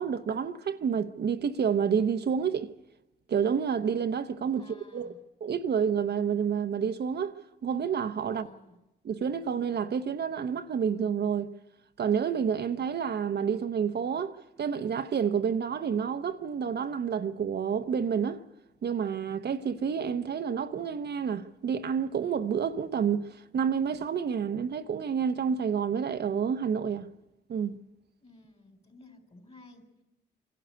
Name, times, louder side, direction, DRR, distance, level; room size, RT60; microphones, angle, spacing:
voice 1, 0.0-2.7 3.3-5.1 5.4-8.5 9.0-11.5 12.0-18.4 18.8-27.1 27.5-27.8, right 7 dB, 60° right, 0.8 m, -29 dB
voice 2, 4.5-5.2 8.3-8.8 28.2-30.0, left 2 dB, 30° left, 4.0 m, -55 dB
25.0 x 12.0 x 9.5 m
cardioid pair, 70°, 19 cm